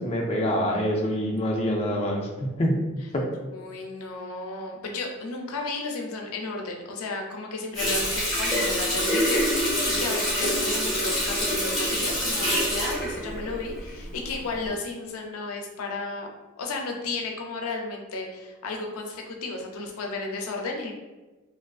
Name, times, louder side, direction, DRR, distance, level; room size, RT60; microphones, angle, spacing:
voice 1, 0.0-2.8 3.1-3.3, equal, 30° left, -1 dB, 0.3 m, -26 dB
voice 2, 3.5-16.3 16.6-20.9, left 3 dB, 90° left, 1 dB, 0.4 m, -33 dB
Water tap faucet, 7.7-14.1 14.5-14.7, equal, ahead, 1.0 m, -26 dB
2.4 x 2.4 x 2.3 m, 1.2 s
head